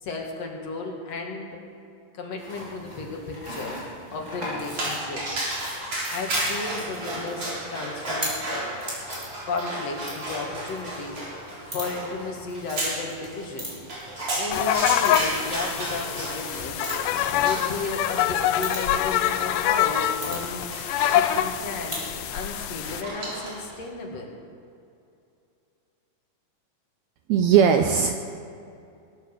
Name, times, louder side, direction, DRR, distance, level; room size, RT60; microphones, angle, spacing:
voice 1, 0.0-1.6 2.1-3.8 4.1-5.3 6.1-8.3 9.4-13.7 14.4-16.9 17.4-20.7 21.1-22.0 22.3-24.4, left 3 dB, 55° left, 1 dB, 2.6 m, -34 dB
sound 1, 2.4-22.1, equal, 10° right, 4.9 m, -41 dB
Dog, 4.7-23.7, right 1 dB, 45° right, 5.0 m, -33 dB
sound 2, 14.5-23.0, left 11 dB, 80° left, 2.2 m, -25 dB
voice 2, 27.3-28.2, right 7 dB, 80° right, 6 dB, 1.7 m, -18 dB
21.5 x 9.4 x 6.6 m, 2.5 s
omnidirectional pair, 3.8 m